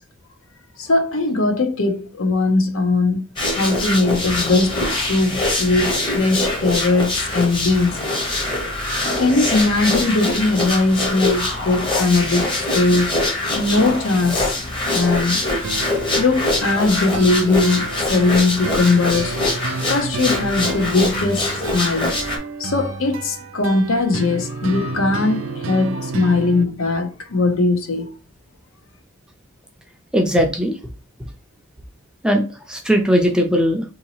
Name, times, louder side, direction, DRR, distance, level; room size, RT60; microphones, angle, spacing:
voice 1, 0.8-3.2 3.6-8.0 9.0-13.1 13.5-15.5 16.1-19.4 19.9-22.1 22.6-28.1, left 3 dB, 75° left, 0.7 m, -20 dB
sound 1, 3.4-22.4, left 2 dB, 25° left, 0.8 m, -23 dB
sound 2, 15.6-26.6, right 4 dB, 70° right, 0.4 m, -31 dB
voice 2, 30.1-30.8 32.2-32.4 32.7-33.8, equal, 5° right, 0.4 m, -18 dB
3.8 x 2.7 x 2.9 m
head